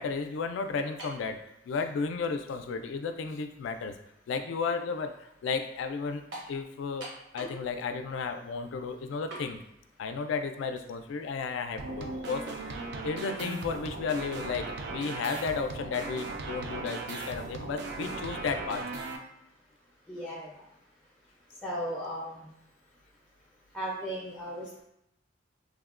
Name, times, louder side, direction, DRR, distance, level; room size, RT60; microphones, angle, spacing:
voice 1, 0.0-1.4 1.7-3.9 4.3-6.2 6.5-7.1 7.3-9.6 10.0-12.8 13.0-18.8, left 5 dB, 80° left, 7 dB, 0.3 m, -33 dB
sound 1, 1.0-1.3 2.2-2.3 6.3-6.6 7.0-7.7 7.9-8.0 9.3-9.5, right 2 dB, 80° right, 0.9 m, -42 dB
sound 2, 11.8-19.2, right 3 dB, 60° right, 0.3 m, -38 dB
voice 2, 20.1-20.6 21.6-22.5 23.7-24.8, equal, 5° left, -7 dB, 0.4 m, -36 dB
3.5 x 2.1 x 2.4 m, 0.82 s
head